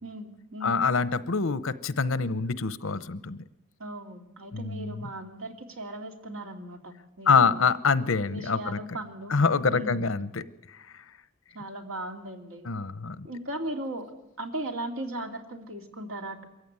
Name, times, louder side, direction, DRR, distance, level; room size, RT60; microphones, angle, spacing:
voice 1, 0.0-0.8 3.8-7.7 8.3-9.3 9.7-10.1 11.5-12.7 13.2-14.1 14.4-16.5, right 1 dB, 90° right, 4 dB, 2.6 m, -37 dB
voice 2, 0.6-3.4 4.5-5.1 7.3-9.0 9.3-10.4 12.7-13.3, left 5 dB, 85° left, 15 dB, 0.9 m, -25 dB
23.0 x 14.5 x 9.6 m, 0.98 s
head